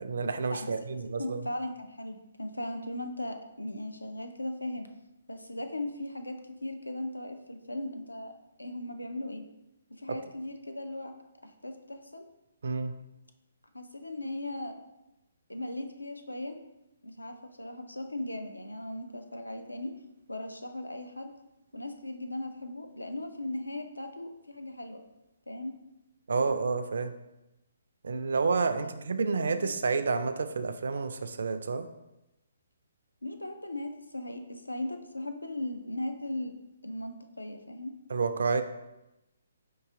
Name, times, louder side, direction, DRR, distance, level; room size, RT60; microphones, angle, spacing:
voice 1, 0.0-1.5 10.1-10.2 12.6-12.9 26.3-27.1 28.0-31.9 38.1-38.6, right 4 dB, 55° right, 9 dB, 0.3 m, -29 dB
voice 2, 1.2-4.9 5.3-8.3 8.6-9.4 9.9-11.1 11.4-12.2 13.7-14.8 15.5-16.6 17.0-20.0 20.3-21.3 21.7-25.0 25.5-25.7 29.6-29.7 33.2-36.5 36.8-37.9, left 1 dB, 80° left, 6 dB, 0.5 m, -38 dB
4.7 x 2.7 x 3.6 m, 0.93 s
figure-of-eight pair, 130°, 0 cm